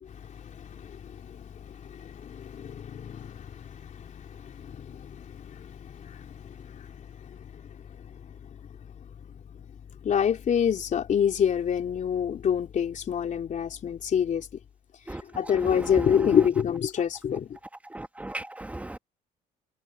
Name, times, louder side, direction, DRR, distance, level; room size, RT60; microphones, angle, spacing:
voice 1, 0.0-8.1 10.0-14.5 15.3-17.6, left 8 dB, 45° left, 3.5 m, -28 dB
voice 2, 17.9-19.0, right 1 dB, 10° right, 1.6 m, -37 dB
cardioid pair, 110°, 17 cm